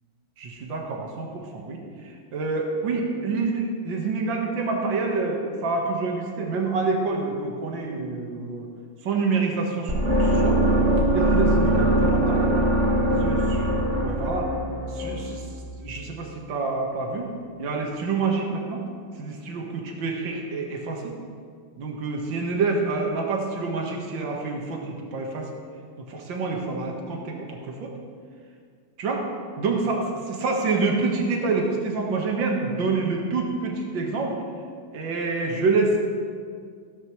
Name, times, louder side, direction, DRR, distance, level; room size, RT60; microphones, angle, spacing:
voice 1, 0.4-8.7 9.0-10.6 11.1-12.6 13.2-13.6 14.0-14.5 14.9-15.5 15.8-17.3 17.6-18.8 19.1-21.1 21.8-25.5 26.1-27.9 29.0-29.3 29.6-34.4 34.9-36.0, right 3 dB, 70° right, 0 dB, 2.2 m, -27 dB
sound 1, 9.9-15.9, right 1 dB, 40° right, 1.9 m, -22 dB
16.0 x 12.0 x 3.2 m, 2.1 s
omnidirectional pair, 2.2 m